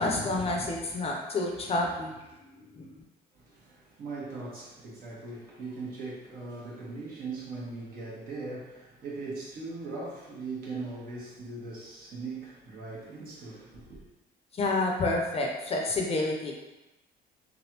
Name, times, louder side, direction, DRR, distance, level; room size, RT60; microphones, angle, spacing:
voice 1, 0.0-2.1 2.7-2.9 14.5-16.5, left 2 dB, 35° left, 0 dB, 0.6 m, -29 dB
voice 2, 3.3-14.0, right 3 dB, 60° right, -6 dB, 1.3 m, -40 dB
3.3 x 2.4 x 2.8 m, 0.99 s
cardioid pair, 110°, 17 cm